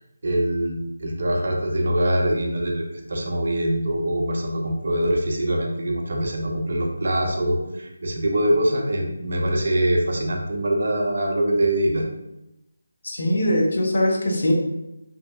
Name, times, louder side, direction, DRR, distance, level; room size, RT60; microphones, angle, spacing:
voice 1, 0.2-12.0, right 1 dB, 50° right, 1 dB, 0.4 m, -23 dB
voice 2, 13.0-14.5, left 1 dB, 45° left, 0 dB, 0.5 m, -21 dB
2.7 x 2.4 x 2.2 m, 0.91 s
figure-of-eight pair, 175°, 0 cm